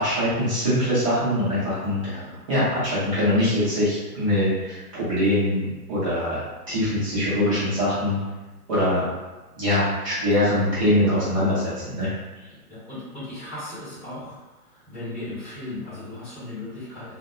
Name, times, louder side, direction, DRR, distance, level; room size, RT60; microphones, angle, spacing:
voice 1, 0.0-2.0 2.5-6.4 6.7-8.2 8.7-9.1 9.6-12.1, left 1 dB, 20° right, -12 dB, 0.7 m, -23 dB
voice 2, 2.0-2.5 12.0-12.1 12.7-17.2, left 2 dB, 10° left, -12 dB, 1.2 m, -37 dB
2.7 x 2.1 x 2.4 m, 1.1 s
hypercardioid pair, 155°, 47 cm